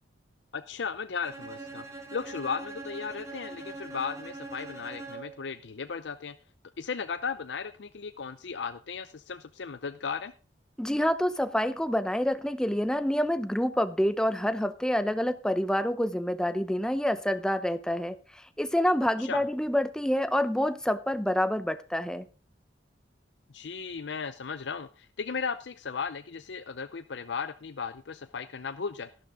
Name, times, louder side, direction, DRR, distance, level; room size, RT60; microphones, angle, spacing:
voice 1, 0.5-6.3 6.8-10.3 19.2-19.4 23.5-29.1, left 5 dB, 85° left, 0.6 m, -36 dB
Bowed string instrument, 1.2-5.5, right 3 dB, 20° right, 3.4 m, -42 dB
voice 2, 10.8-22.3, equal, 5° left, 0.7 m, -27 dB
12.0 x 11.5 x 3.6 m
head